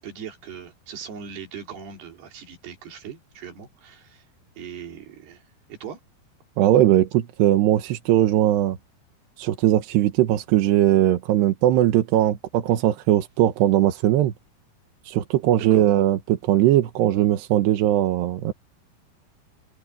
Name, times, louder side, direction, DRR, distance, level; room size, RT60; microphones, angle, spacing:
voice 1, 0.0-4.3 4.6-5.4 5.7-6.0 15.6-15.9, right 7 dB, 75° right, 5.4 m, -39 dB
voice 2, 6.6-8.8 9.4-14.3 15.1-18.5, right 13 dB, 90° right, 3.3 m, -19 dB
omnidirectional pair, 4.8 m